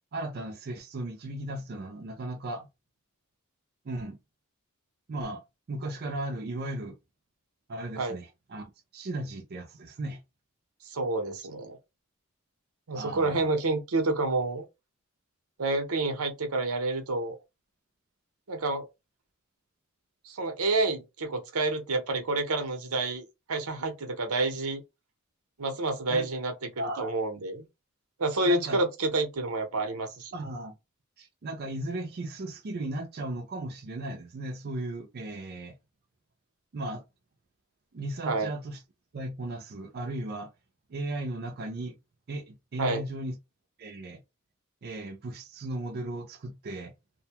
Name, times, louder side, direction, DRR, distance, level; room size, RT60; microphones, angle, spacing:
voice 1, 0.1-2.7 3.8-4.2 5.1-5.4 5.7-7.0 7.7-10.2 12.9-13.5 26.1-26.3 26.8-27.2 28.4-28.8 30.3-30.7 31.2-35.8 36.7-37.0 37.9-38.8 39.1-40.5 40.9-42.0 42.3-43.4 43.8-44.2 44.8-46.9, right 1 dB, 45° right, 0.5 m, -36 dB
voice 2, 10.9-11.8 12.9-14.6 15.6-17.4 18.5-18.8 20.2-24.8 25.6-26.7 27.0-27.7 28.2-30.3 38.3-38.5 42.8-43.0, right 2 dB, 85° right, 0.8 m, -29 dB
2.6 x 2.2 x 2.8 m
head